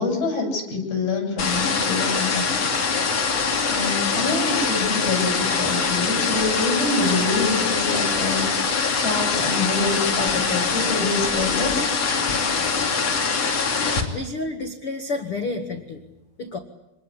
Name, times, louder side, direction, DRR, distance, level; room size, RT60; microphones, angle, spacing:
voice 1, 0.0-2.8 3.7-8.5 8.9-11.9, left 3 dB, 55° left, 3 dB, 9.5 m, -26 dB
sound 1, 1.4-14.0, left 5 dB, 35° left, 3.5 m, -23 dB
voice 2, 14.1-16.0 16.4-16.6, left 3 dB, 85° left, 4 dB, 1.2 m, -30 dB
27.0 x 21.0 x 10.0 m, 0.92 s
omnidirectional pair, 5.9 m